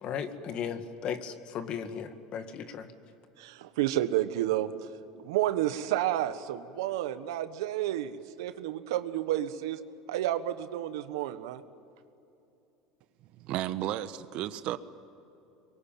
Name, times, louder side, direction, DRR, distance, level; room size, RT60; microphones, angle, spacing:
voice 1, 0.0-2.9, left 7 dB, 50° left, 9 dB, 2.0 m, -36 dB
voice 2, 3.4-4.7 5.1-9.8 10.1-11.6, right 13 dB, 85° right, 11 dB, 1.3 m, -30 dB
voice 3, 13.3-14.8, right 13 dB, 60° right, 12 dB, 1.2 m, -33 dB
25.5 x 23.0 x 9.2 m, 2.8 s
supercardioid pair, 110°, 2 cm